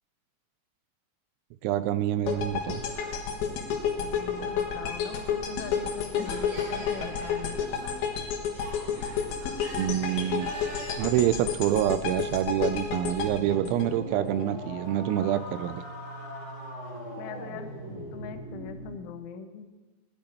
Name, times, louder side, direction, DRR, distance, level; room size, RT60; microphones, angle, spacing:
voice 1, 1.6-2.8 9.8-10.5 11.0-15.8, right 11 dB, 85° right, 13 dB, 2.8 m, -27 dB
sound 1, 2.3-14.4, left 6 dB, 65° left, 2.9 m, -31 dB
sound 2, 2.3-10.9, right 1 dB, 45° right, 4.5 m, -46 dB
voice 2, 4.0-7.6 17.2-19.7, left 7 dB, 80° left, 8 dB, 3.2 m, -42 dB
sound 3, 13.1-19.0, equal, 30° left, 0.8 m, -40 dB
18.0 x 12.0 x 4.4 m, 1.3 s
omnidirectional pair, 5.6 m